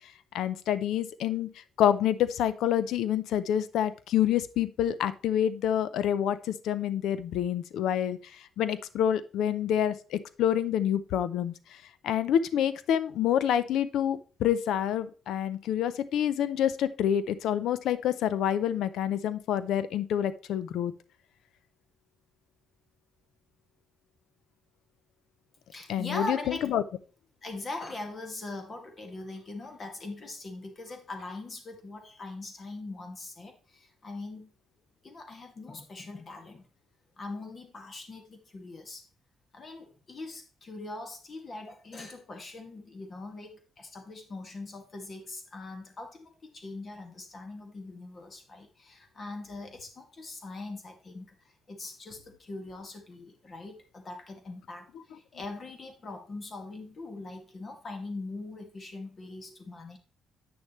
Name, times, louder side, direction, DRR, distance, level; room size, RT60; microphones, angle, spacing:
voice 1, 0.3-1.5 1.8-8.2 8.6-11.5 12.0-20.9 25.9-26.8, left 10 dB, 80° left, 15 dB, 0.6 m, -27 dB
voice 2, 25.7-26.7 27.4-34.5 35.0-36.7 37.2-39.0 39.5-60.0, left 2 dB, 40° left, 5 dB, 2.0 m, -41 dB
8.9 x 6.5 x 3.1 m, 0.36 s
cardioid pair, 90°, 0 cm